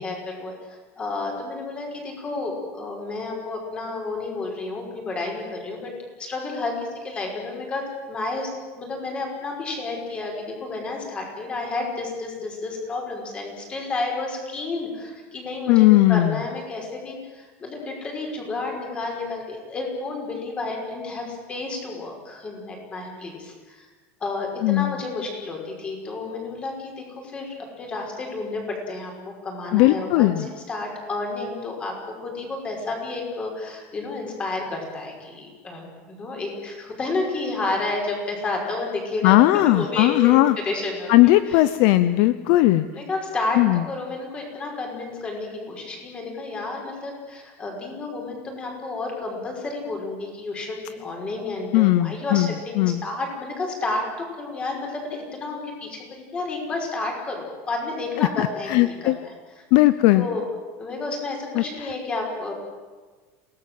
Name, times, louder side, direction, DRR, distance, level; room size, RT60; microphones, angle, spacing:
voice 1, 0.0-5.9 6.2-8.5 8.8-23.9 24.2-31.9 32.2-40.4 40.6-41.6 42.5-43.6 43.9-59.1 60.1-60.4 60.8-62.5, left 3 dB, 15° left, 1 dB, 5.5 m, -31 dB
voice 2, 15.7-16.4 24.6-25.0 29.7-30.5 39.2-40.6 41.1-42.8 43.6-43.8 51.7-53.0 58.2-59.2 59.7-60.3 61.5-61.9, left 17 dB, 50° left, 14 dB, 0.7 m, -18 dB
28.5 x 18.0 x 7.8 m, 1.4 s
cardioid pair, 180°, 7 cm